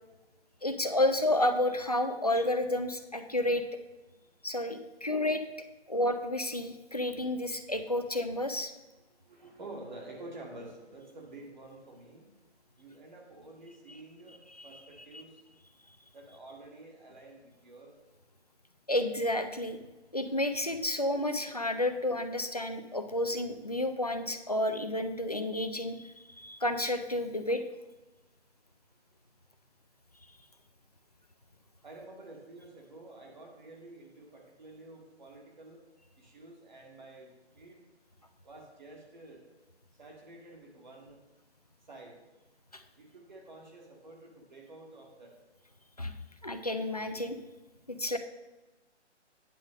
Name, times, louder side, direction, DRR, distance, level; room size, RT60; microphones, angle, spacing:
voice 1, 0.6-3.6 4.4-5.4 5.9-8.7 14.6-14.8 18.9-19.8 20.1-27.6 42.7-42.8 46.0-46.1 46.4-47.4 47.9-48.2, left 1 dB, 35° left, 8 dB, 0.5 m, -30 dB
voice 2, 9.2-12.5 12.8-15.4 16.1-17.9 31.8-35.8 36.2-37.8 38.4-39.5 40.0-41.2 41.9-42.2 43.0-45.3, right 2 dB, 40° right, 0 dB, 1.9 m, -49 dB
9.5 x 4.9 x 6.2 m, 1.1 s
hypercardioid pair, 180°, 35 cm